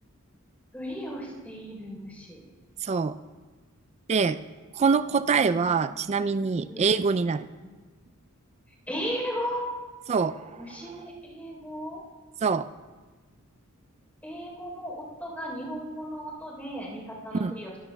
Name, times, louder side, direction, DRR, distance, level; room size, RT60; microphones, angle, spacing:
voice 1, 0.7-2.4 6.7-6.9 8.9-9.7 10.6-12.0 14.2-17.7, equal, 10° left, -3 dB, 3.7 m, -36 dB
voice 2, 2.8-3.2 4.1-4.4 4.8-7.5 10.1-10.6 12.4-12.7 17.4-17.5, right 5 dB, 30° right, 13 dB, 0.3 m, -24 dB
22.0 x 13.0 x 2.3 m, 1.3 s
head